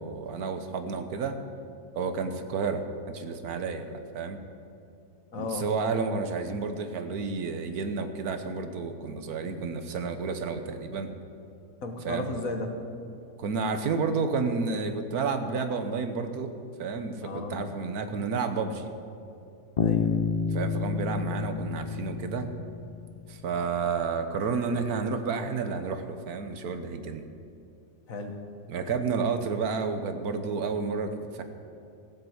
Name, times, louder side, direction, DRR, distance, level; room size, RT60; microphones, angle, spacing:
voice 1, 0.0-1.4 1.9-4.4 5.4-11.1 12.0-12.3 13.4-16.5 16.8-18.9 20.5-22.5 23.3-27.2 28.7-31.4, right 5 dB, 70° right, 8 dB, 1.4 m, -31 dB
voice 2, 5.3-5.7 11.8-12.7 17.2-17.7 19.8-20.2 28.1-28.4, left 3 dB, 60° left, 5 dB, 1.6 m, -34 dB
Bass guitar, 19.8-23.5, left 6 dB, 80° left, 0.3 m, -29 dB
15.0 x 8.0 x 7.9 m, 2.7 s
omnidirectional pair, 1.7 m